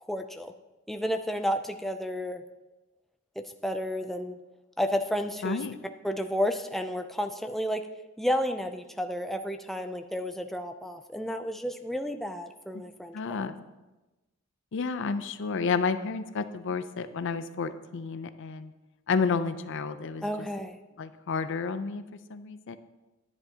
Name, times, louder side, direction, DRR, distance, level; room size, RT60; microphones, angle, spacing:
voice 1, 0.1-0.5 0.9-2.4 3.6-4.4 4.8-5.6 6.0-7.8 8.2-13.4 20.2-20.8, equal, ahead, 6 dB, 0.3 m, -31 dB
voice 2, 5.4-5.8 13.1-13.5 14.7-18.7 19.1-20.3 21.0-22.0 22.3-22.8, left 5 dB, 60° left, 11 dB, 0.5 m, -30 dB
10.5 x 9.9 x 2.8 m, 1.1 s
head